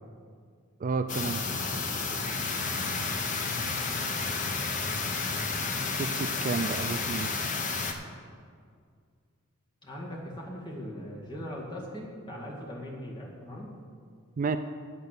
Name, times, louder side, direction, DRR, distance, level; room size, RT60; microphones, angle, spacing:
voice 1, 0.8-1.4 6.0-7.3 14.4-14.6, right 4 dB, 40° right, 9 dB, 0.3 m, -30 dB
sound 1, 1.1-7.9, left 4 dB, 35° left, 0.8 m, -31 dB
voice 2, 9.8-13.7, equal, 20° left, -3 dB, 1.9 m, -40 dB
8.8 x 7.9 x 6.6 m, 2.1 s
head